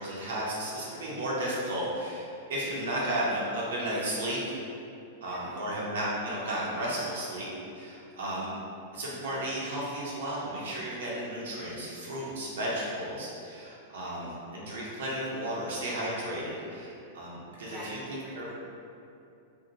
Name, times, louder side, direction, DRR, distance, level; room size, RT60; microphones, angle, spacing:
voice 1, 0.0-4.6 5.2-7.5 7.7-8.5 8.9-18.0 18.4-18.5, right 1 dB, 80° right, -6 dB, 0.7 m, -33 dB
voice 2, 5.3-5.6 8.1-8.3 14.0-14.2 17.7-18.5, equal, ahead, -10 dB, 0.6 m, -47 dB
2.6 x 2.1 x 2.7 m, 2.6 s
supercardioid pair, 140°, 0 cm